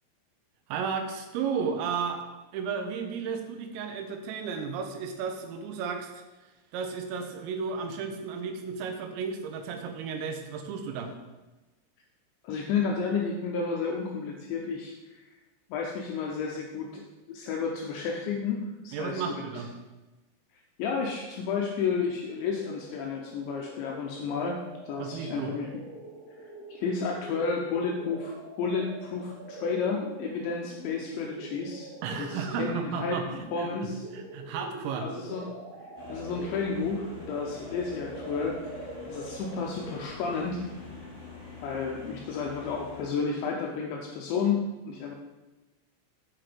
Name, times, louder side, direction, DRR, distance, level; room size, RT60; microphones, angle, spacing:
voice 1, 0.7-2.2 2.5-6.2 6.7-11.1 18.9-19.7 25.0-25.5 32.0-33.7 34.1-35.1, right 6 dB, 85° right, 5 dB, 3.5 m, -33 dB
voice 2, 12.4-15.3 15.7-17.0 17.3-19.2 20.8-25.8 26.7-31.9 32.2-33.2 33.5-34.1 35.0-35.5 36.1-40.6 41.6-45.1, left 5 dB, 80° left, 0 dB, 2.6 m, -31 dB
sound 1, 22.5-40.1, right 2 dB, 30° right, 3.0 m, -44 dB
sound 2, 35.9-43.0, left 2 dB, 50° left, 0.4 m, -45 dB
7.7 x 5.9 x 5.0 m, 1.1 s
omnidirectional pair, 6.0 m